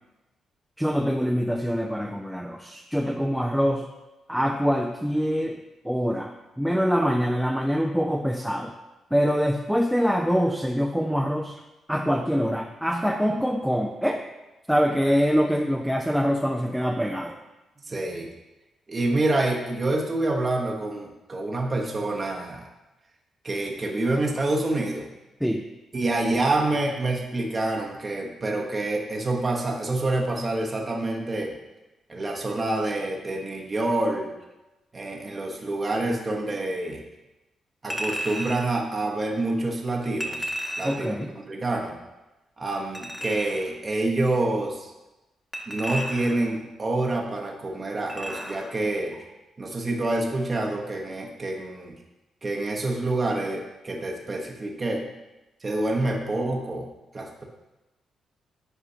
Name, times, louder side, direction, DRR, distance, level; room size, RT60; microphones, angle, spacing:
voice 1, 0.8-3.9 4.3-8.7 9.1-11.6 11.9-14.2 14.7-17.4 25.4-25.7 40.8-41.3, equal, ahead, 2 dB, 0.5 m, -24 dB
voice 2, 17.9-18.3 18.9-22.7 23.4-25.1 25.9-31.5 32.1-34.3 34.9-37.0 37.8-40.5 40.8-41.2 41.5-42.0 42.6-44.9 45.7-49.2 49.6-51.9 52.4-55.1 55.6-56.9 57.1-57.4, right 2 dB, 35° right, 0 dB, 0.9 m, -27 dB
Chink clink, 37.9-38.7 40.2-41.1 42.9-43.7 45.5-46.5 48.1-48.7 49.1-49.2, equal, 20° left, 1.3 m, -33 dB
8.1 x 4.9 x 2.8 m, 1.0 s
hypercardioid pair, 45°, 0 cm